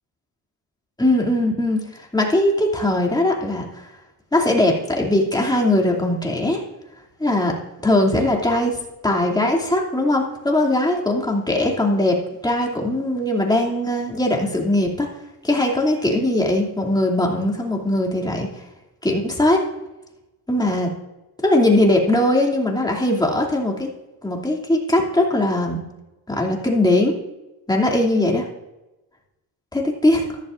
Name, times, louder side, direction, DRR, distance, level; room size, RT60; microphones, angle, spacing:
voice 1, 1.0-3.8 4.3-6.6 7.2-7.5 7.8-8.7 9.0-12.2 12.4-15.1 15.4-18.5 19.0-19.6 20.5-20.9 21.4-23.9 24.2-25.8 26.3-27.1 27.7-28.4 29.7-30.4, left 1 dB, 10° left, -1 dB, 2.8 m, -20 dB
14.0 x 11.5 x 2.6 m, 1.0 s
cardioid pair, 100°, 38 cm